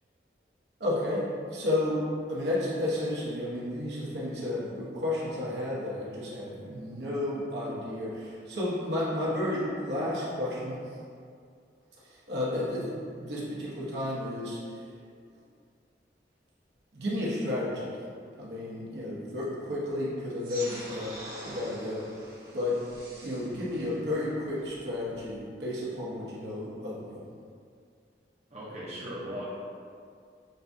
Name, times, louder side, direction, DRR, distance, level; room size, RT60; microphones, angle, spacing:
voice 1, 0.8-1.2 1.5-2.0 2.3-10.8 12.3-12.9 13.2-14.6 16.9-17.9 18.4-21.2 21.4-22.1 22.5-22.8 23.2-27.2, left 1 dB, 75° right, -6 dB, 1.0 m, -32 dB
sound 1, 20.4-25.4, right 1 dB, 55° right, 1.3 m, -45 dB
voice 2, 28.5-29.5, equal, 40° right, -8 dB, 0.6 m, -38 dB
6.6 x 2.3 x 2.6 m, 2.3 s
head